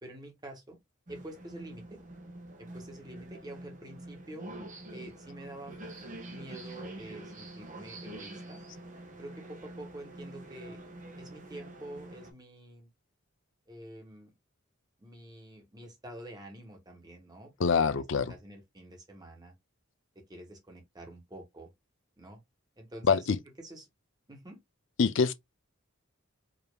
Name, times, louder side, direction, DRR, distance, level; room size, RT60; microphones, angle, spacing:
voice 1, 0.0-0.8 1.1-2.0 2.7-4.5 4.9-5.8 6.3-8.6 9.2-10.8 11.1-12.9 13.7-14.3 15.0-17.5 17.8-18.0 18.3-19.5 20.1-21.7 22.2-22.4 22.8-23.3 23.6-23.9 24.3-24.6, right 1 dB, 20° right, 1.4 m, -47 dB
sound 1, 1.1-12.3, right 1 dB, 40° right, 1.1 m, -46 dB
voice 2, 17.6-18.3 23.0-23.4 25.0-25.3, left 5 dB, 65° left, 0.5 m, -25 dB
5.1 x 2.9 x 2.2 m
head